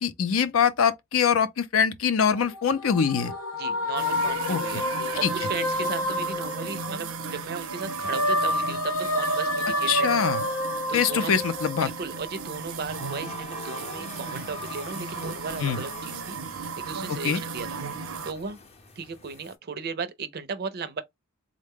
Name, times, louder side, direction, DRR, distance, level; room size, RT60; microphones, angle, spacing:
voice 1, 0.0-3.3 4.5-4.6 5.2-5.3 9.9-10.4 10.9-11.9 15.6-15.8 17.1-17.4, left 7 dB, 70° left, 0.5 m, -23 dB
sound 1, 2.3-7.3 7.7-12.5, left 1 dB, 90° left, 1.0 m, -29 dB
voice 2, 3.5-4.9 5.1-10.2 10.9-11.3 11.8-16.4 16.8-18.6 19.0-21.0, right 5 dB, 50° right, 0.5 m, -36 dB
sound 2, 4.0-18.3, right 5 dB, 90° right, 0.7 m, -36 dB
sound 3, 11.4-19.6, left 4 dB, 30° left, 0.7 m, -45 dB
3.6 x 2.1 x 3.5 m
head